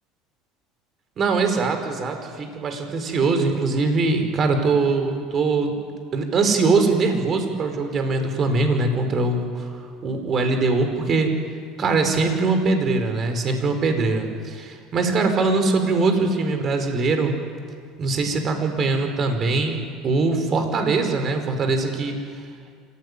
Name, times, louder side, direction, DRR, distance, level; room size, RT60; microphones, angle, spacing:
voice 1, 1.2-5.8 6.1-9.7 10.0-11.3 11.8-17.3 18.0-19.8 20.0-22.1, right 3 dB, 40° right, 6 dB, 4.8 m, -22 dB
26.0 x 17.0 x 9.8 m, 2.1 s
supercardioid pair, 90°, 0 cm